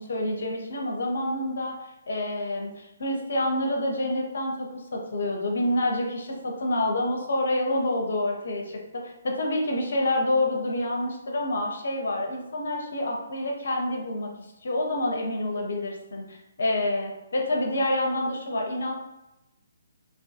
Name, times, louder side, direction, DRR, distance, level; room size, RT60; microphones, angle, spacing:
voice 1, 0.0-1.7 2.1-14.3 14.6-18.9, left 1 dB, 60° left, 1 dB, 0.6 m, -28 dB
2.3 x 2.3 x 2.6 m, 0.94 s
figure-of-eight pair, 135°, 0 cm